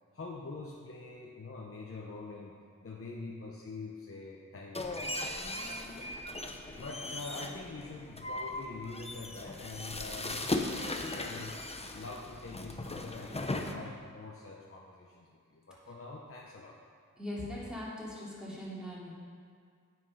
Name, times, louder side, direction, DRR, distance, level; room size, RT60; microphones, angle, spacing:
voice 1, 0.1-6.1 6.8-11.6 11.9-16.8, left 3 dB, 45° left, -2 dB, 0.9 m, -45 dB
sound 1, 4.8-13.7, left 2 dB, 20° left, 0.7 m, -38 dB
voice 2, 17.2-19.1, left 1 dB, ahead, -7 dB, 2.9 m, -40 dB
8.0 x 7.9 x 5.7 m, 2.1 s
wide cardioid pair, 95°, 33 cm